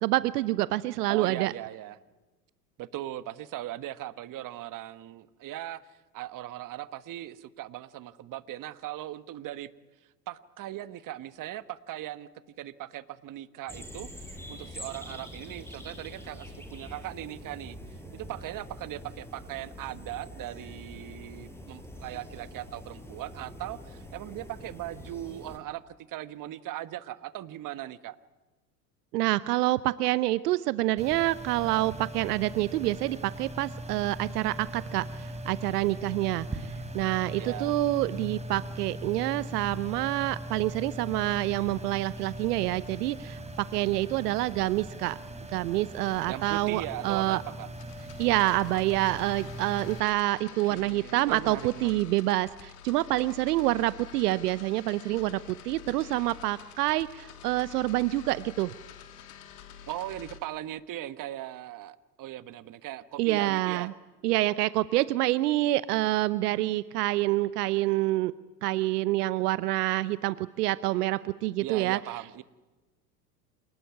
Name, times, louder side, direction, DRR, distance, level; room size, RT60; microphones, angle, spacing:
voice 1, 0.0-1.5 29.1-45.2 45.5-47.4 48.2-58.7 63.2-63.9 64.2-68.3 68.6-72.0, right 17 dB, 75° right, 17 dB, 0.8 m, -27 dB
voice 2, 1.1-2.0 2.8-9.7 10.0-12.3 12.6-28.2 37.4-37.7 46.3-47.7 50.6-52.0 59.9-63.9 71.6-72.4, right 14 dB, 40° right, 14 dB, 1.4 m, -39 dB
sound 1, 13.7-25.6, equal, 5° left, 6.6 m, -45 dB
sound 2, 31.0-50.0, right 1 dB, 15° right, 3.8 m, -40 dB
sound 3, 47.8-60.4, left 8 dB, 65° left, 3.2 m, -48 dB
27.5 x 19.5 x 9.5 m, 1.2 s
hypercardioid pair, 85°, 47 cm